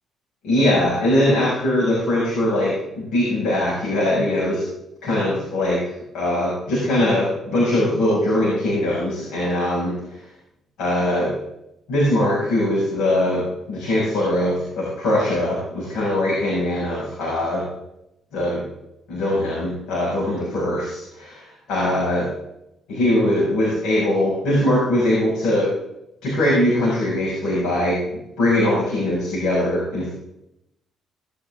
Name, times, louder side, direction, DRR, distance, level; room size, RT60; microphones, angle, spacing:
voice 1, 0.4-4.6 5.0-9.9 10.8-11.3 11.9-17.6 18.3-18.6 19.1-22.3 22.9-25.7 26.2-28.0 28.4-30.1, left 1 dB, 85° left, -6 dB, 6.4 m, -21 dB
19.0 x 11.0 x 3.7 m, 0.85 s
cardioid pair, 90°, 0 cm